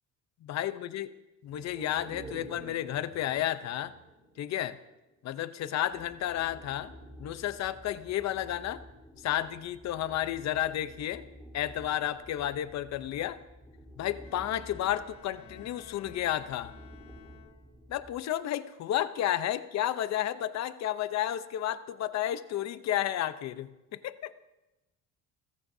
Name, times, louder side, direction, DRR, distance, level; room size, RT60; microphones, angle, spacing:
voice 1, 0.4-1.1 1.4-3.9 4.4-4.8 5.2-6.9 7.2-8.8 9.2-11.2 11.5-13.4 14.0-16.7 17.9-24.3, left 12 dB, 50° left, 13 dB, 0.8 m, -32 dB
sound 1, 1.5-5.2 5.6-5.7, right 2 dB, 15° right, 5.9 m, -49 dB
sound 2, 5.9-18.1, equal, 5° left, 3.8 m, -51 dB
Bowed string instrument, 14.2-18.0, left 11 dB, 85° left, 1.2 m, -55 dB
29.0 x 15.5 x 2.7 m, 0.99 s
cardioid pair, 140°, 34 cm